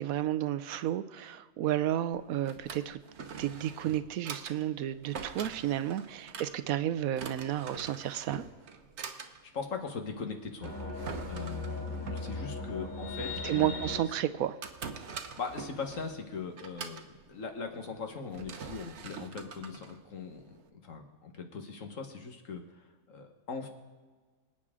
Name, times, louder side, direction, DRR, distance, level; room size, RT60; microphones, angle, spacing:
voice 1, 0.0-3.0 3.4-8.4 13.4-14.6, right 12 dB, 90° right, 14 dB, 1.1 m, -32 dB
Drawer open or close, 2.1-20.7, right 6 dB, 60° right, 1.1 m, -45 dB
voice 2, 9.1-10.7 11.2-14.1 15.4-23.7, left 5 dB, 70° left, 4 dB, 1.7 m, -40 dB
sound 1, 10.6-14.0, left 2 dB, 35° left, 3.7 m, -38 dB
26.0 x 8.9 x 3.7 m, 1.4 s
omnidirectional pair, 1.4 m